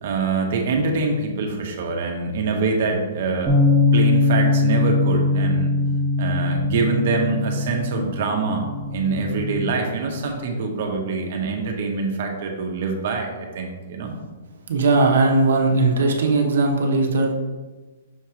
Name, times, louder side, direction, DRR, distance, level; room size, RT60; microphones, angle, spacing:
voice 1, 0.0-5.7 6.2-8.7 8.9-14.2, right 4 dB, 50° right, 2 dB, 1.1 m, -25 dB
Bass guitar, 3.5-9.7, left 3 dB, 10° right, 0.8 m, -21 dB
voice 2, 14.7-17.3, right 3 dB, 75° right, 1 dB, 1.1 m, -18 dB
6.4 x 3.1 x 4.9 m, 1.2 s
hypercardioid pair, 165°, 0 cm